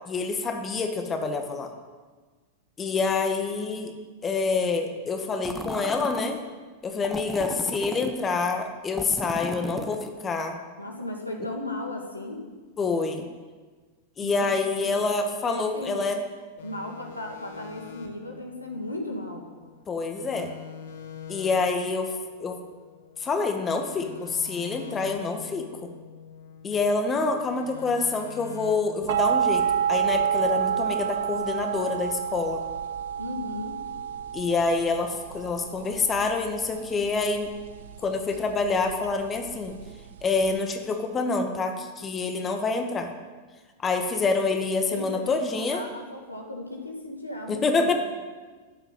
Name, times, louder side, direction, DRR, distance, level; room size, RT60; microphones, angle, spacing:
voice 1, 0.1-1.7 2.8-3.9 4.2-6.4 6.8-10.6 12.8-13.3 14.2-16.2 19.9-20.5 21.3-22.1 22.4-22.6 23.2-25.9 26.6-29.6 29.9-32.6 34.3-37.5 38.0-39.7 40.2-43.1 43.8-45.9 47.5-47.9, left 4 dB, 20° left, 4 dB, 1.8 m, -27 dB
sound 1, 5.4-6.3 7.0-8.1 9.0-10.2, left 1 dB, 5° left, 1.3 m, -35 dB
voice 2, 10.8-12.4 14.2-15.1 15.5-16.0 16.6-19.4 33.2-33.8 44.9-47.9, left 1 dB, 85° left, 1 dB, 2.5 m, -36 dB
sound 2, 16.6-19.8 20.1-23.4 23.8-27.0 27.3-30.5, left 8 dB, 60° left, 2.0 m, -45 dB
sound 3, 29.1-40.6, right 8 dB, 60° right, 0.7 m, -29 dB
15.0 x 8.0 x 9.5 m, 1.4 s
figure-of-eight pair, 90°, 0 cm